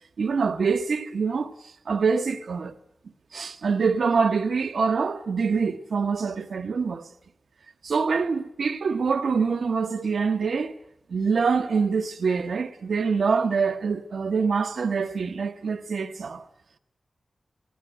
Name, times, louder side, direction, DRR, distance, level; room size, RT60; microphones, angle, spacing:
voice 1, 0.2-1.5 1.9-2.8 3.3-7.1 7.8-10.7 11.1-16.4, right 5 dB, 90° right, 1.0 m, -25 dB
17.5 x 17.0 x 9.2 m
cardioid pair, 55°, 0 cm